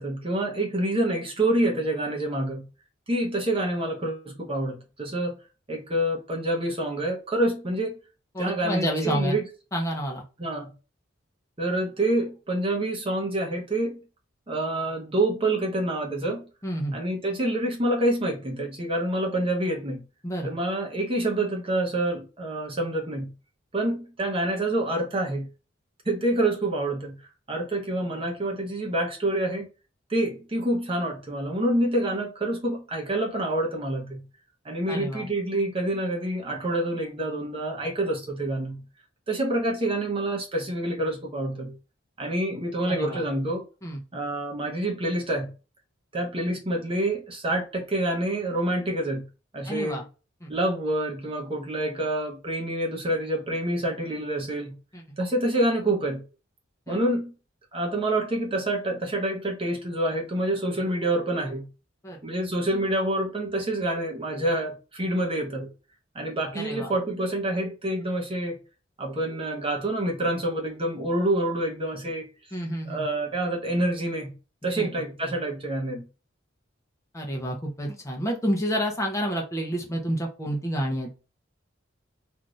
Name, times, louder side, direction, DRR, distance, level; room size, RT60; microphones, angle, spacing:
voice 1, 0.0-2.7 3.1-5.4 5.7-8.0 8.4-9.5 10.4-10.7 11.6-14.0 14.5-16.4 16.9-20.0 20.4-23.3 23.7-25.5 26.0-27.2 27.5-29.7 30.1-34.3 34.6-38.8 39.3-41.8 42.2-43.6 44.1-45.5 46.1-49.3 49.5-50.0 50.5-54.8 55.2-56.2 56.9-57.3 57.7-61.7 62.2-65.7 66.1-68.6 69.0-72.3 72.9-74.3 74.6-76.1, right 1 dB, 30° right, 0.8 m, -27 dB
voice 2, 8.3-9.4 9.7-10.2 16.6-17.0 20.2-20.6 34.9-35.3 42.9-43.2 43.8-44.0 49.6-50.0 50.4-50.5 54.9-55.0 56.9-57.0 62.0-62.2 66.5-66.9 72.5-73.1 74.8-74.9 77.1-81.2, equal, 15° left, 0.7 m, -29 dB
2.6 x 2.5 x 3.1 m
head